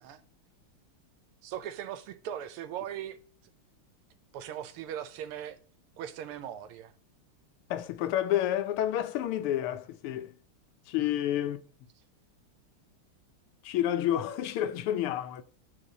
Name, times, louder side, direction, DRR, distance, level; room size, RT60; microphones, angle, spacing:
voice 1, 1.4-3.2 4.3-5.6 6.0-6.9 11.0-11.2, right 10 dB, 85° right, 1.6 m, -39 dB
voice 2, 7.7-10.3 10.9-11.6 13.6-15.4, left 12 dB, 85° left, 1.6 m, -29 dB
10.5 x 3.7 x 3.9 m
omnidirectional pair, 2.4 m